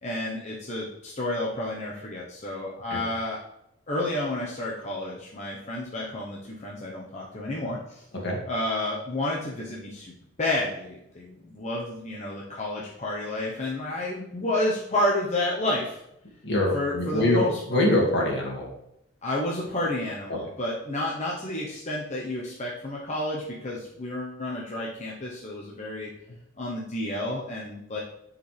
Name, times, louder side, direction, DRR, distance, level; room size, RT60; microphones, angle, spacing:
voice 1, 0.0-3.4 3.9-8.0 8.5-16.0 16.7-17.6 19.2-26.1 26.6-28.0, left 1 dB, 35° left, -4 dB, 1.0 m, -30 dB
voice 2, 16.4-17.4 17.7-18.7 20.3-20.4, left 1 dB, 65° left, -2 dB, 2.3 m, -24 dB
9.9 x 5.0 x 3.4 m, 0.79 s
head